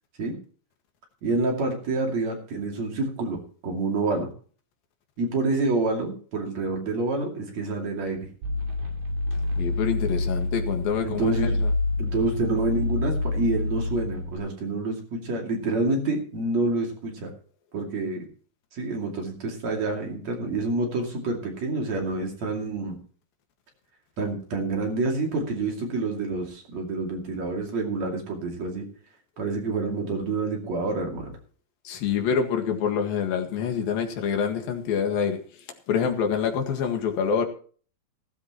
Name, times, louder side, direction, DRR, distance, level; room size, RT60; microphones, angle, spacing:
voice 1, 1.2-4.3 5.2-8.3 11.0-11.6 12.0-17.3 17.7-18.2 18.7-23.0 24.2-28.9 29.4-31.4, right 3 dB, 55° right, 3.7 m, -28 dB
sound 1, 8.4-14.4, left 2 dB, 70° right, 4.4 m, -27 dB
voice 2, 9.6-11.7 31.9-35.4 35.9-37.5, left 7 dB, 85° left, 3.6 m, -26 dB
16.5 x 13.5 x 3.0 m
omnidirectional pair, 4.0 m